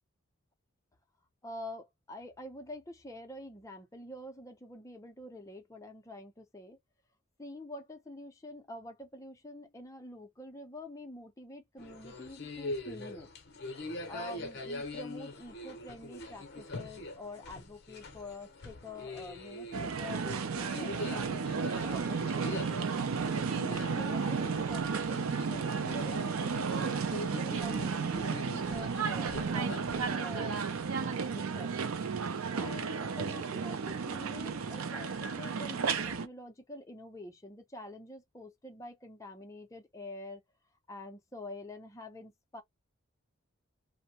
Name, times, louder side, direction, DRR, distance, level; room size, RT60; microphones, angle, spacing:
voice 1, 1.4-6.8 7.4-13.3 13.7-23.0 23.5-24.8 25.1-31.7 32.5-40.4 40.9-42.6, left 1 dB, 15° left, 0.5 m, -47 dB
sound 1, 11.8-30.3, left 2 dB, 50° left, 0.7 m, -43 dB
sound 2, 19.7-36.3, right 5 dB, 75° right, 0.5 m, -33 dB
2.6 x 2.1 x 2.8 m
head